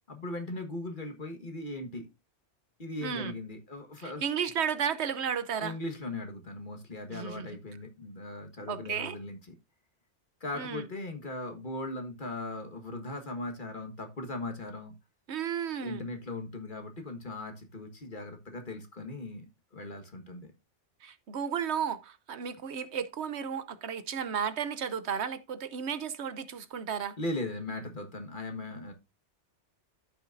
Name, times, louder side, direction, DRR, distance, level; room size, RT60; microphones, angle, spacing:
voice 1, 0.1-2.1 2.8-4.2 5.6-9.4 10.4-14.9 15.8-19.5 19.7-20.5 27.2-28.9, left 2 dB, 45° left, 1.6 m, -38 dB
voice 2, 3.0-3.3 4.0-5.8 7.1-7.6 8.7-9.2 10.5-10.9 15.3-16.1 21.0-27.1, right 7 dB, 70° right, 1.0 m, -33 dB
14.0 x 6.0 x 2.6 m
omnidirectional pair, 1.2 m